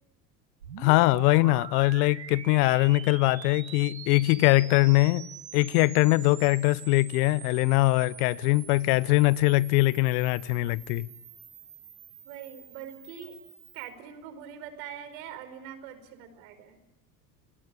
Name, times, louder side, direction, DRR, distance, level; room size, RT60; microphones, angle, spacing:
sound 1, 0.6-13.9, right 8 dB, 90° right, 2.1 m, -45 dB
voice 1, 0.8-5.3 5.5-11.1, left 20 dB, 65° left, 0.9 m, -22 dB
voice 2, 12.2-13.4 13.7-16.8, right 9 dB, 65° right, 5.0 m, -43 dB
29.5 x 20.0 x 8.9 m
hypercardioid pair, 75°, 50 cm